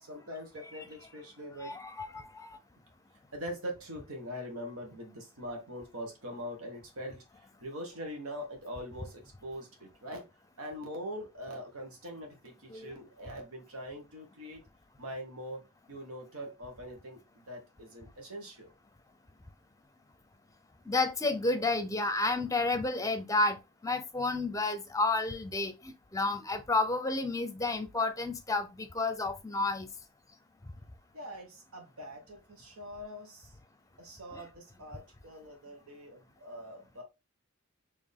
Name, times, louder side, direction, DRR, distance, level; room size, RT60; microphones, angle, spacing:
voice 1, 0.0-1.7 3.3-10.3 10.6-14.6 15.0-18.7 31.1-33.5 34.0-37.0, equal, 90° right, 1.4 m, -43 dB
voice 2, 1.6-2.6 12.7-12.9 20.9-23.6 23.8-29.9 34.3-34.4, left 2 dB, 15° left, 0.6 m, -31 dB
4.4 x 3.0 x 3.4 m
head